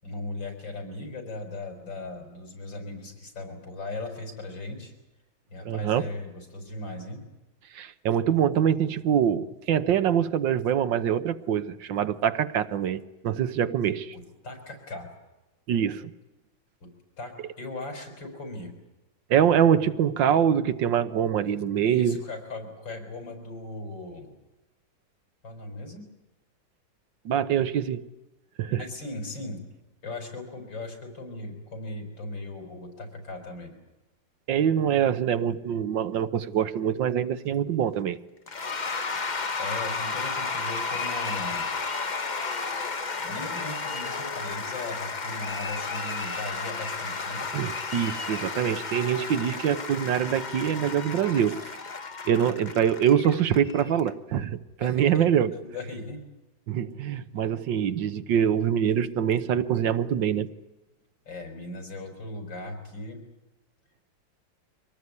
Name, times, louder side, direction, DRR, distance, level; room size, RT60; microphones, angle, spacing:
voice 1, 0.0-4.9 5.5-7.2 14.1-15.1 16.8-16.9 17.2-18.7 21.8-24.3 25.4-26.0 28.7-29.6 30.0-33.7 39.6-41.7 43.2-47.4 54.8-55.2 55.5-56.2 61.3-63.2, left 2 dB, 85° left, 6.0 m, -38 dB
voice 2, 5.6-6.1 7.7-14.1 15.7-16.1 19.3-22.2 27.2-28.0 28.6-28.8 34.5-38.2 47.5-51.6 52.3-55.5 56.7-60.5, right 9 dB, 80° right, 1.7 m, -24 dB
Cheering / Applause / Crowd, 38.5-54.1, left 4 dB, 30° left, 1.0 m, -33 dB
24.5 x 18.5 x 9.6 m
omnidirectional pair, 2.0 m